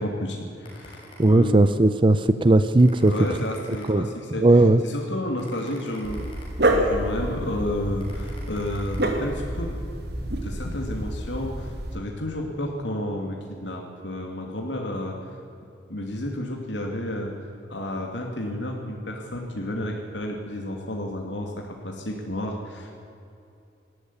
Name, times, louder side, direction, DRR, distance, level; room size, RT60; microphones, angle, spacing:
voice 1, 0.0-1.7 3.0-9.8 10.4-15.3 15.9-17.3 17.7-23.0, left 1 dB, 75° left, 1 dB, 2.7 m, -31 dB
sound 1, 0.6-1.8 2.3-2.4 2.8-4.4 4.9-5.0 5.4-7.0 7.5-7.6 8.0-9.0, left 2 dB, 30° left, 6.8 m, -49 dB
voice 2, 1.2-3.1 3.9-4.1 4.4-4.8, right 2 dB, 30° right, 12 dB, 0.6 m, -17 dB
Dog, 6.0-12.0, right 1 dB, 65° right, 2.6 m, -28 dB
19.5 x 14.0 x 9.8 m, 2.7 s
head